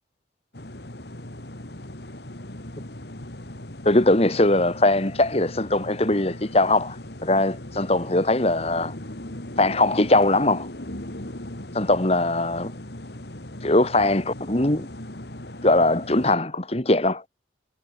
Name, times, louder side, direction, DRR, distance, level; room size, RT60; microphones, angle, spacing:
sound 1, 0.5-16.4, left 1 dB, 65° left, 2.8 m, -38 dB
voice 1, 3.8-7.0 7.2-8.9 9.6-10.7 11.7-12.7 13.6-14.9 15.6-17.2, left 2 dB, 35° left, 1.7 m, -21 dB
head